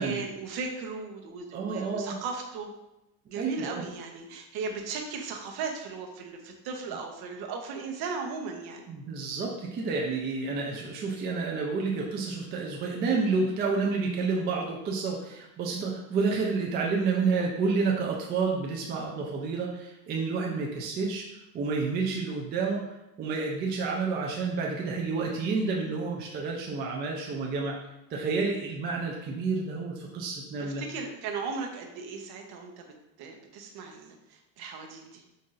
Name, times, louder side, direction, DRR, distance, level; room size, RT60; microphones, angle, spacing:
voice 1, 0.0-2.7 3.3-8.9 30.6-35.2, right 4 dB, 50° right, 2 dB, 0.8 m, -37 dB
voice 2, 1.5-2.2 3.4-3.8 8.9-21.2 21.5-27.8 28.1-30.8, right 4 dB, 25° right, -1 dB, 0.3 m, -29 dB
5.5 x 2.6 x 2.5 m, 0.93 s
supercardioid pair, 115°, 50 cm